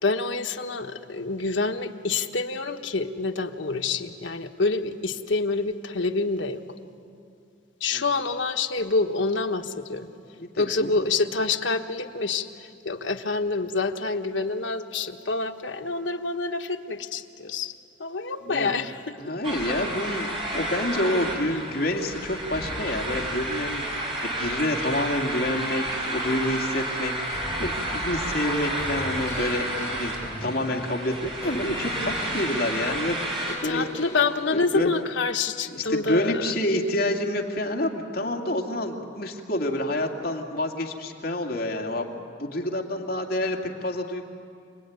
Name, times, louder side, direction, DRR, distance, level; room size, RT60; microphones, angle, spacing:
voice 1, 0.0-6.6 7.8-10.1 10.6-17.7 18.0-19.0 33.5-36.5, left 3 dB, 75° left, 6 dB, 1.3 m, -27 dB
voice 2, 10.4-11.0 18.5-18.7 19.2-30.1 30.4-33.9 34.5-34.9 35.7-43.6 43.8-44.2, left 1 dB, 55° left, 1 dB, 2.6 m, -28 dB
sound 1, 19.4-33.6, right 1 dB, 30° right, 5.0 m, -31 dB
sound 2, 27.3-34.7, left 1 dB, 15° left, 6.3 m, -40 dB
27.5 x 20.0 x 9.6 m, 2.4 s
head